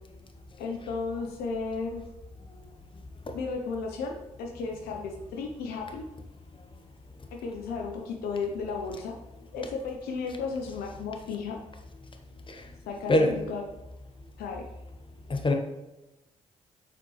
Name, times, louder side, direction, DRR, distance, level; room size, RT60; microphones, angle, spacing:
voice 1, 0.6-2.0 3.3-6.1 7.3-9.2 9.5-11.6 12.9-13.6 14.4-14.6, left 4 dB, 65° left, 1 dB, 0.7 m, -34 dB
voice 2, 12.5-12.6 13.1-13.3 15.3-15.5, left 1 dB, 30° left, 4 dB, 1.0 m, -22 dB
7.0 x 4.2 x 3.1 m, 0.98 s
figure-of-eight pair, 40°, 17 cm